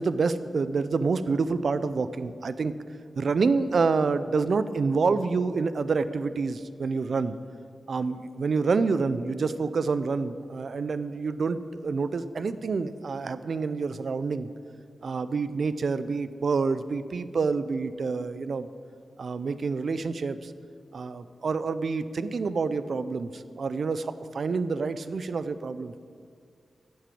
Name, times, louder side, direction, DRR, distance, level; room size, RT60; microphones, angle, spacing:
voice 1, 0.0-2.8 3.2-7.4 7.9-14.5 15.0-18.7 19.2-20.5 20.9-26.0, right 4 dB, 70° right, 13 dB, 0.6 m, -27 dB
10.5 x 7.6 x 8.5 m, 2.2 s
cardioid pair, 55°, 0 cm